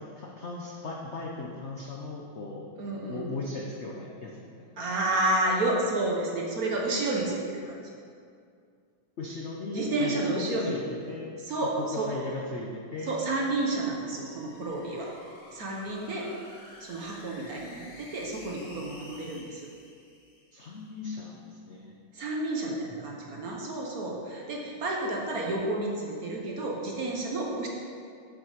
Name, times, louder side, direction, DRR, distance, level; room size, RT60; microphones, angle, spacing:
voice 1, 0.0-2.7 3.1-4.9 9.2-10.8 11.1-11.3 11.8-13.2 20.5-21.9, left 3 dB, 75° left, -1 dB, 0.6 m, -37 dB
voice 2, 2.8-3.3 4.8-7.9 9.7-10.7 11.4-12.1 13.0-15.1 15.5-16.3 16.8-19.7 22.1-27.7, right 2 dB, 50° right, -1 dB, 1.3 m, -30 dB
sound 1, 13.5-20.9, left 2 dB, 30° left, 0.9 m, -51 dB
7.7 x 7.3 x 5.1 m, 2.3 s
omnidirectional pair, 2.3 m